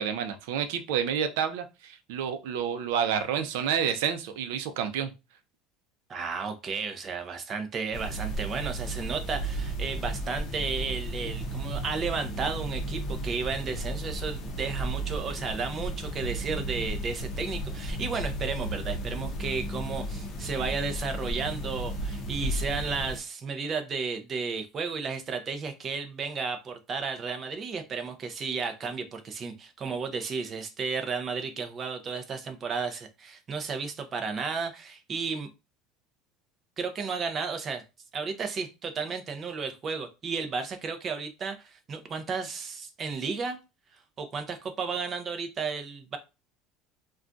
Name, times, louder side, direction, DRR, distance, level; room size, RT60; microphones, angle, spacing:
voice 1, 0.0-5.1, right 8 dB, 80° right, 9 dB, 0.5 m, -29 dB
voice 2, 6.1-35.5 36.8-37.8 38.1-43.6 44.2-46.2, right 5 dB, 25° right, 7 dB, 0.5 m, -33 dB
sound 1, 7.9-23.2, right 1 dB, 30° left, 0.6 m, -34 dB
2.3 x 2.2 x 3.8 m, 0.27 s
cardioid pair, 165°, 0 cm